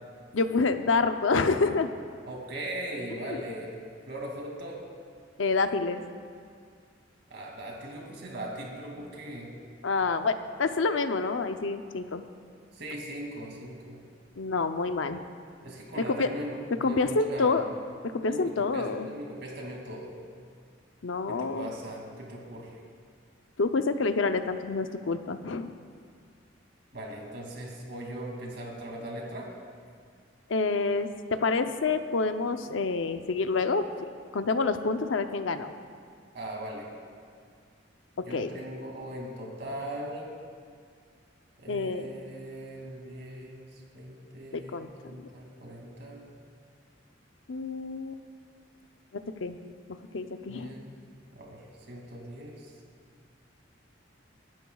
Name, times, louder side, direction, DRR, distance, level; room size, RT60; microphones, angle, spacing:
voice 1, 0.3-1.9 3.3-3.4 5.4-6.0 9.8-12.2 14.4-15.2 16.1-16.3 16.8-17.6 18.2-19.1 21.0-21.7 23.6-25.7 30.5-31.1 31.4-33.9 34.3-35.7 38.3-38.5 41.7-42.1 44.5-44.9 45.2-45.3 47.5-48.2 49.4-49.6 50.1-50.7, left 4 dB, 85° left, 8 dB, 0.6 m, -27 dB
voice 2, 2.2-3.7 4.1-4.8 7.3-9.5 12.7-14.0 15.6-17.6 18.3-20.1 21.3-22.8 26.9-29.5 36.3-36.9 38.2-40.3 41.6-43.7 43.9-44.8 45.0-46.3 50.5-51.0 51.3-51.6 51.9-52.6, right 1 dB, 60° right, -1 dB, 2.5 m, -39 dB
24.0 x 12.0 x 2.4 m, 2.2 s
head